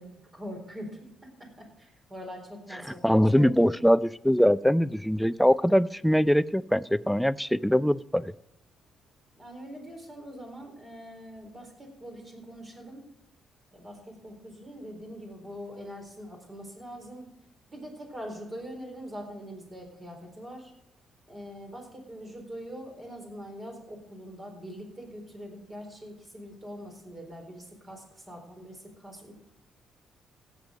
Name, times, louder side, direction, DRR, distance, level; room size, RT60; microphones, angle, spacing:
voice 1, 0.0-3.7 9.4-13.1 13.7-17.3 17.7-20.7 21.3-29.3, equal, 30° right, 2 dB, 4.2 m, -43 dB
voice 2, 3.0-8.3, equal, ahead, 16 dB, 0.4 m, -22 dB
16.5 x 7.4 x 5.2 m, 0.82 s
cardioid pair, 90°, 0 cm